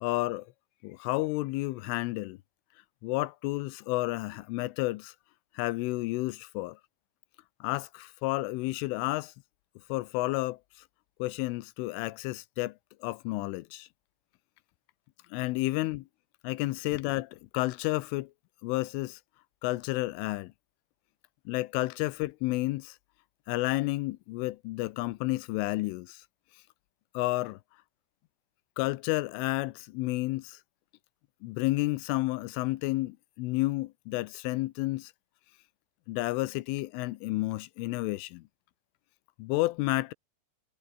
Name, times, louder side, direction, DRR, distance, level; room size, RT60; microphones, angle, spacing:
voice 1, 0.0-0.5 0.8-2.4 3.0-5.1 5.5-6.8 7.6-9.3 9.9-10.8 11.2-12.7 13.0-13.9 15.3-16.0 16.4-18.3 18.6-19.2 19.6-20.5 21.5-23.0 23.5-26.2 27.1-27.6 28.8-30.6 31.4-35.1 36.1-38.4 39.4-40.1, left 20 dB, 90° left, 3.3 m, -31 dB
omnidirectional pair, 5.7 m